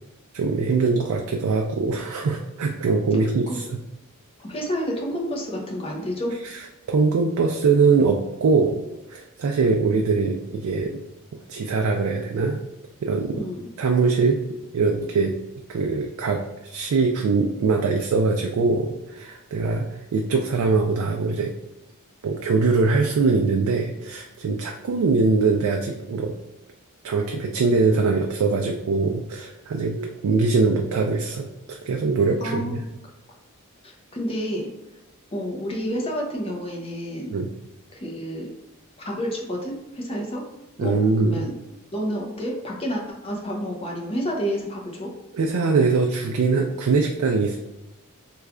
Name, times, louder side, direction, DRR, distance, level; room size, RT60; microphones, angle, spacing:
voice 1, 0.3-3.8 6.4-6.5 6.9-8.8 9.1-11.0 11.5-12.6 13.0-13.4 13.8-14.4 14.7-15.3 15.7-21.5 22.2-26.3 27.0-32.8 37.3-37.5 40.8-41.4 45.3-47.6, right 4 dB, 75° right, 2 dB, 0.4 m, -22 dB
voice 2, 4.4-6.3 13.3-13.7 30.2-30.4 32.4-32.7 33.8-34.7 35.3-37.3 37.9-38.5 39.0-40.4 40.8-41.5 41.9-45.1, equal, 25° left, -1 dB, 0.7 m, -29 dB
3.2 x 2.3 x 3.6 m, 0.98 s
head